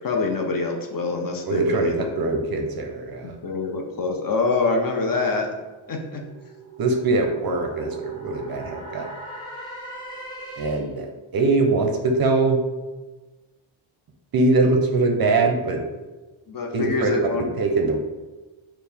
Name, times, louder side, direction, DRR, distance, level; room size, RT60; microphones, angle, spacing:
voice 1, 0.0-2.1 3.2-5.5 5.9-6.2 16.5-17.4, left 3 dB, 45° left, 2 dB, 0.5 m, -25 dB
voice 2, 1.5-3.4 6.8-9.1 10.6-11.1 11.3-12.6 14.3-15.8 16.7-17.1 17.6-18.0, right 3 dB, 50° right, 3 dB, 0.5 m, -22 dB
sound 1, 5.6-11.0, right 3 dB, 10° left, 0.7 m, -39 dB
4.4 x 2.1 x 3.4 m, 1.2 s
wide cardioid pair, 120°, 50 cm